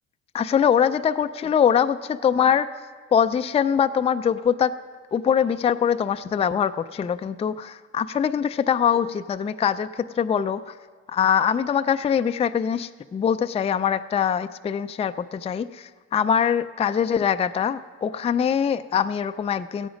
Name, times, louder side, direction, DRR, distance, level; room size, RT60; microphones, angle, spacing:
voice 1, 0.3-2.0 2.2-2.7 3.1-4.8 5.1-10.8 11.1-19.9, left 8 dB, 20° left, 11 dB, 0.3 m, -23 dB
15.0 x 8.7 x 5.2 m, 1.5 s
cardioid pair, 90°, 30 cm